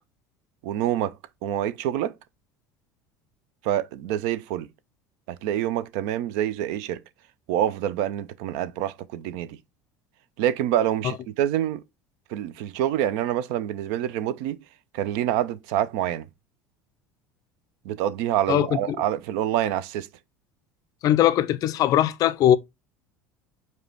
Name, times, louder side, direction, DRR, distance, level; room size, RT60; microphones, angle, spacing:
voice 1, 0.6-1.1 1.4-2.1 3.6-4.7 5.4-7.0 7.5-9.6 10.4-11.8 12.3-14.6 14.9-16.3 17.9-20.1, right 11 dB, 60° right, 0.4 m, -26 dB
voice 2, 18.5-19.0 21.0-22.6, left 11 dB, 45° left, 0.4 m, -20 dB
4.8 x 2.3 x 4.2 m
hypercardioid pair, 70°, 8 cm